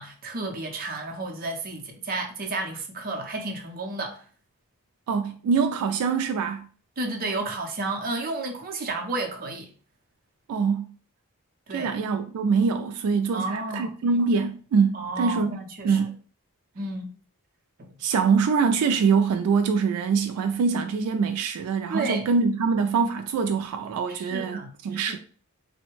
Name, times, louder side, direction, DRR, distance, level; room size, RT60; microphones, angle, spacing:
voice 1, 0.0-4.2 7.0-9.7 11.7-11.9 13.3-13.9 14.9-16.0 16.8-17.1 17.8-18.0 21.9-22.3 24.1-25.2, right 2 dB, 40° right, 0.6 m, -32 dB
voice 2, 5.1-6.7 10.5-10.9 11.7-15.6 15.8-16.2 18.0-25.2, right 5 dB, 80° right, 0.3 m, -24 dB
3.2 x 2.1 x 3.0 m
head